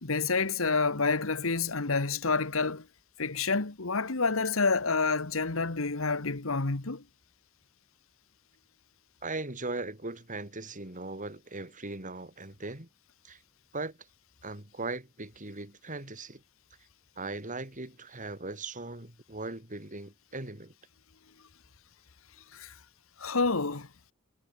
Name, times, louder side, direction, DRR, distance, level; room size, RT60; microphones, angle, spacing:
voice 1, 0.0-2.9 3.2-7.0 22.5-22.7 23.2-23.9, left 4 dB, 70° left, 1.5 m, -28 dB
voice 2, 9.2-12.9 13.2-13.4 13.7-14.0 14.4-16.4 17.2-20.7, right 2 dB, 40° right, 4.5 m, -39 dB
head